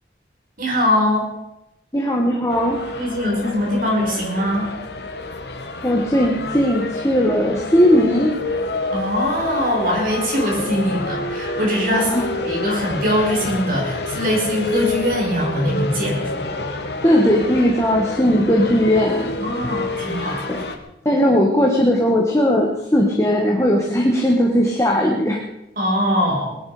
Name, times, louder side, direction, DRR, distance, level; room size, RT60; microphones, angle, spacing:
voice 1, 0.6-1.3 3.0-4.7 8.9-16.4 19.4-20.6 23.8-23.9 25.8-26.6, equal, 50° right, -2 dB, 5.8 m, -22 dB
voice 2, 1.9-2.8 5.8-8.3 11.9-12.2 17.0-19.3 20.5-20.6 21.0-25.4, equal, 15° left, 0 dB, 1.7 m, -18 dB
sound 1, 2.5-20.8, left 2 dB, 70° left, 1.5 m, -28 dB
19.5 x 12.0 x 5.1 m, 0.85 s
head